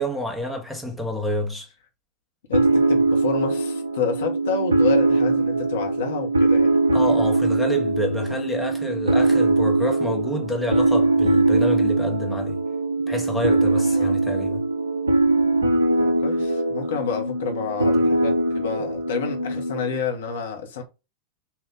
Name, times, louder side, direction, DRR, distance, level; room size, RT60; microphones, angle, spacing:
voice 1, 0.0-1.7 6.9-12.6 13.1-14.6, left 1 dB, ahead, 1.3 m, -28 dB
voice 2, 2.5-6.7 13.9-14.1 16.0-20.8, left 6 dB, 60° left, 1.3 m, -29 dB
sound 1, 2.5-20.0, right 2 dB, 75° right, 0.7 m, -21 dB
4.7 x 2.8 x 3.6 m
figure-of-eight pair, 90°, 0 cm